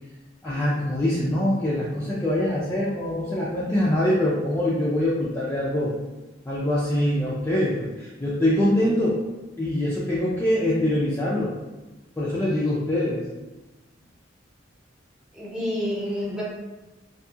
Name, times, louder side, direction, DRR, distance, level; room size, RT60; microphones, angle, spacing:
voice 1, 0.4-5.9 6.5-9.2 9.6-11.5 12.2-13.2, left 1 dB, 15° left, -7 dB, 0.4 m, -24 dB
voice 2, 15.3-16.4, left 1 dB, 5° right, -7 dB, 0.8 m, -28 dB
2.7 x 2.6 x 2.3 m, 1.1 s
head